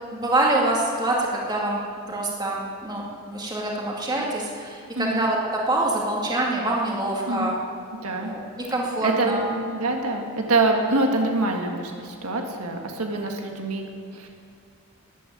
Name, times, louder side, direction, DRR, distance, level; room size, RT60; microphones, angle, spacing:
voice 1, 0.1-1.8 2.1-5.4 5.7-7.5 8.2-8.4 8.7-9.4, right 2 dB, 20° right, -3 dB, 2.3 m, -25 dB
voice 2, 8.0-8.3 9.0-13.8 14.1-14.3, right 2 dB, 85° right, 2 dB, 1.7 m, -25 dB
13.0 x 10.5 x 9.2 m, 2.2 s
head